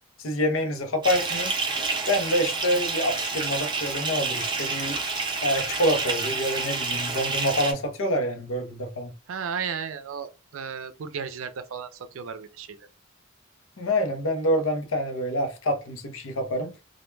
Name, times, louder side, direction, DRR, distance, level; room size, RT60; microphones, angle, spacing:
voice 1, 0.2-1.6 2.1-5.0 5.4-9.1 13.8-16.8, equal, 90° left, 0.7 m, -26 dB
Bathtub (filling or washing) / Fill (with liquid), 1.0-7.7, right 3 dB, 25° right, 0.5 m, -29 dB
voice 2, 9.3-11.9 12.1-12.9, right 6 dB, 80° right, 0.4 m, -34 dB
2.2 x 2.2 x 3.1 m
head